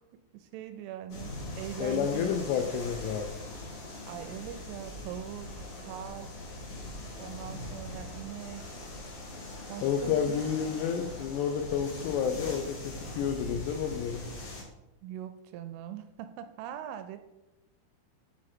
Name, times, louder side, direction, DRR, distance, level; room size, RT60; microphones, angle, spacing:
voice 1, 0.1-2.4 4.0-6.3 7.2-8.8 9.7-10.6 15.0-17.2, right 11 dB, 85° right, 9 dB, 2.8 m, -42 dB
sound 1, 1.1-14.6, left 1 dB, 50° left, 2.5 m, -41 dB
voice 2, 1.8-3.4 9.8-14.3, left 7 dB, 90° left, 6 dB, 2.4 m, -30 dB
10.0 x 5.1 x 4.3 m, 0.95 s
omnidirectional pair, 5.7 m